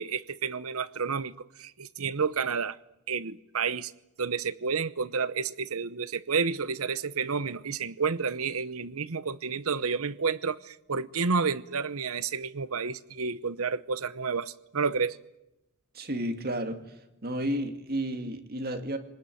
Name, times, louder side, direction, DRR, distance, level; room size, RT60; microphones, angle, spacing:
voice 1, 0.0-2.8 3.1-3.9 4.2-15.2, right 5 dB, 75° right, 0.9 m, -30 dB
voice 2, 15.9-16.8 17.2-19.0, right 1 dB, 45° right, 2.2 m, -31 dB
26.0 x 20.0 x 9.3 m
head